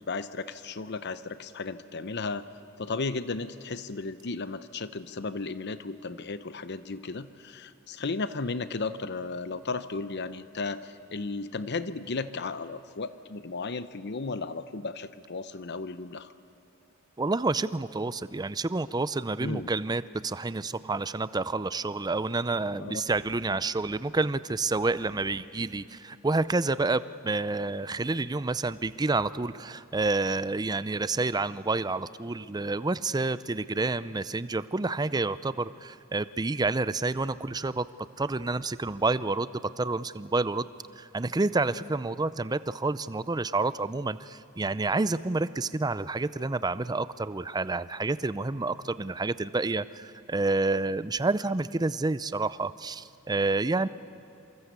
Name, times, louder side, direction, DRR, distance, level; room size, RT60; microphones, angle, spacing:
voice 1, 0.0-2.4 2.8-16.3 19.4-19.7 22.8-23.0, left 3 dB, 55° left, 13 dB, 0.8 m, -34 dB
voice 2, 17.2-37.8 38.2-39.5 39.8-40.7 41.0-53.9, right 3 dB, 20° right, 16 dB, 0.5 m, -29 dB
27.0 x 24.5 x 8.2 m, 2.9 s
head